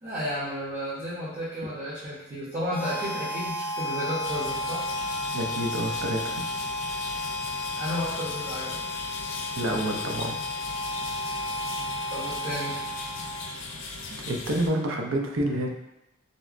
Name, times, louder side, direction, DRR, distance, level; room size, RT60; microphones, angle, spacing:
voice 1, 0.0-4.8 7.7-8.8 12.1-12.7, equal, 35° right, -9 dB, 0.7 m, -32 dB
Harmonica, 2.7-13.7, left 1 dB, 5° left, 0.6 m, -33 dB
sound 1, 4.2-14.7, left 3 dB, 80° left, 0.4 m, -38 dB
voice 2, 5.3-6.4 9.6-10.4 14.1-15.7, right 1 dB, 85° right, 2 dB, 0.5 m, -28 dB
3.9 x 2.1 x 2.4 m, 0.90 s
head